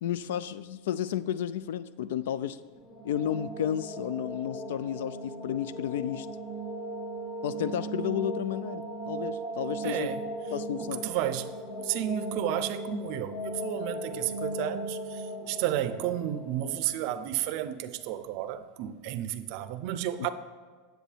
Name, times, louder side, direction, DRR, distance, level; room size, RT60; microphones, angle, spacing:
voice 1, 0.0-2.6 3.0-6.3 7.4-10.1 10.5-11.0, left 10 dB, 80° left, 0.3 m, -32 dB
sound 1, 2.7-17.6, right 1 dB, 15° left, 0.9 m, -38 dB
voice 2, 9.8-10.2 10.7-20.3, right 12 dB, 50° right, 0.5 m, -32 dB
10.0 x 7.9 x 3.3 m
supercardioid pair, 160°, 0 cm